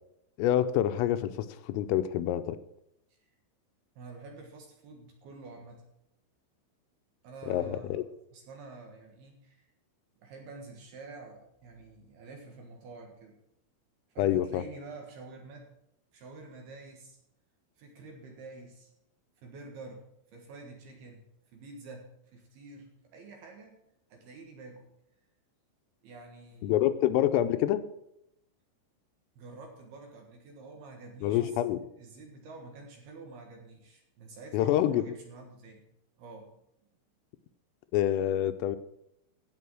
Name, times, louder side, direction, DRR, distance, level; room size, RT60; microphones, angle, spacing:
voice 1, 0.4-2.6 7.5-8.0 14.2-14.6 26.6-27.8 31.2-31.8 34.5-35.0 37.9-38.8, left 12 dB, 85° left, 10 dB, 3.3 m, -27 dB
voice 2, 4.0-5.8 7.2-8.1 8.3-9.7 10.2-13.3 14.1-15.7 16.1-17.2 17.8-18.9 19.4-21.3 21.5-23.8 24.1-24.9 26.0-27.1 29.4-31.6 32.0-35.9 36.2-36.6, right 3 dB, 65° right, 2 dB, 2.9 m, -48 dB
17.0 x 6.1 x 6.2 m, 0.78 s
omnidirectional pair, 6.0 m